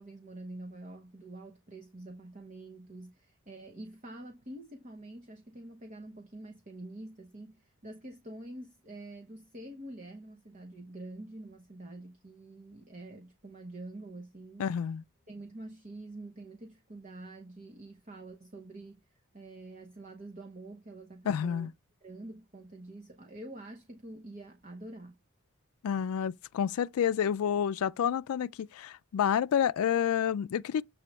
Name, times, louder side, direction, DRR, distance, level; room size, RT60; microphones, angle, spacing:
voice 1, 0.0-14.7 15.3-21.7 22.0-25.2, right 2 dB, 35° right, 0.8 m, -46 dB
voice 2, 14.6-15.0 21.3-21.7 25.8-30.8, left 8 dB, 75° left, 0.3 m, -29 dB
7.5 x 3.2 x 6.0 m
head